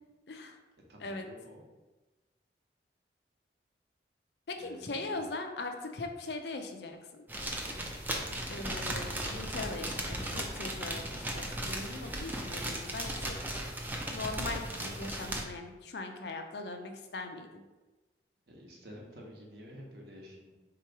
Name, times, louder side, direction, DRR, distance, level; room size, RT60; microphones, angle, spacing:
voice 1, 0.3-0.6 1.0-1.3 4.5-7.0 8.5-13.4 14.1-17.6, left 3 dB, 65° left, 5 dB, 0.5 m, -40 dB
voice 2, 0.9-1.6 4.6-5.2 18.5-20.5, equal, 65° right, -2 dB, 1.0 m, -50 dB
sound 1, 7.3-15.4, right 1 dB, 10° right, 0.4 m, -36 dB
3.8 x 2.9 x 4.6 m, 1.2 s
head